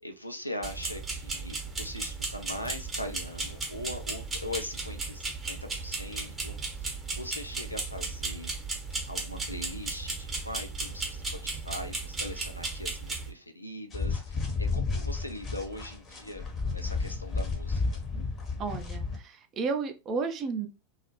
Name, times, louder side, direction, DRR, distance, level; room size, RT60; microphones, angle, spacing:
voice 1, 0.0-8.5 9.1-17.8, left 1 dB, 85° left, 0.4 m, -41 dB
sound 1, 0.6-13.3, right 3 dB, 15° right, 0.8 m, -35 dB
sound 2, 13.9-19.2, left 4 dB, 25° left, 0.7 m, -32 dB
voice 2, 18.6-20.7, right 5 dB, 30° right, 0.4 m, -32 dB
2.3 x 2.0 x 2.9 m
figure-of-eight pair, 90°, 0 cm